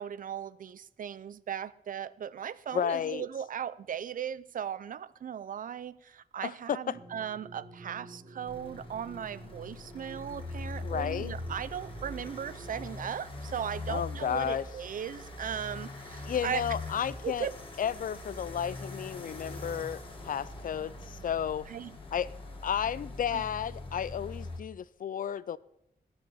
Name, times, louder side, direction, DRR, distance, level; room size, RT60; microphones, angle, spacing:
voice 1, 0.0-16.6 17.2-17.5 21.7-21.9 23.3-23.5, right 8 dB, 55° right, 0.4 m, -37 dB
voice 2, 2.7-3.3 6.4-7.0 10.8-11.3 13.9-14.7 16.3-17.5 17.8-21.7 22.1-22.3 22.6-25.6, left 8 dB, 55° left, 0.4 m, -32 dB
sound 1, 6.9-12.9, right 2 dB, 30° right, 1.0 m, -49 dB
sound 2, 8.5-24.6, left 2 dB, 30° left, 1.9 m, -42 dB
13.0 x 6.5 x 6.9 m
wide cardioid pair, 165°, 16 cm